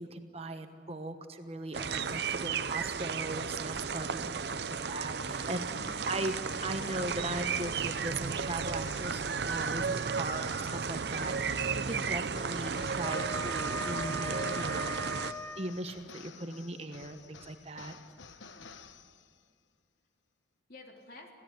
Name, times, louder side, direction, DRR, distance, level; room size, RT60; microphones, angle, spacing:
voice 1, 0.0-5.6 6.1-6.3 6.6-15.0 15.6-17.9, right 2 dB, 35° right, 7 dB, 1.2 m, -39 dB
sound 1, 1.7-15.3, right 5 dB, 60° right, 0.7 m, -34 dB
sound 2, 5.4-19.5, left 5 dB, 85° left, 1.0 m, -52 dB
voice 2, 5.6-6.1 17.9-18.7 20.7-21.3, left 2 dB, 50° left, 0 dB, 3.7 m, -53 dB
Wind instrument woodwind instrument, 12.6-15.6, equal, 15° left, 2.3 m, -39 dB
27.5 x 16.5 x 8.5 m, 2.1 s
head